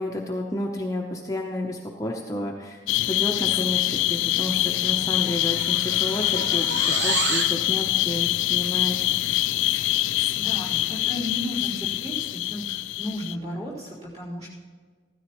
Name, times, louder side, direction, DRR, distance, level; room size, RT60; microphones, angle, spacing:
voice 1, 0.0-2.8 3.1-9.0, left 1 dB, 15° left, 0 dB, 0.7 m, -31 dB
sound 1, 2.9-13.4, left 16 dB, 85° left, 0.3 m, -25 dB
sound 2, 4.4-4.6 4.9-7.6, right 4 dB, 65° right, 1.0 m, -30 dB
voice 2, 10.4-14.5, left 1 dB, 35° right, -8 dB, 4.4 m, -34 dB
15.5 x 13.0 x 3.0 m, 1.5 s
head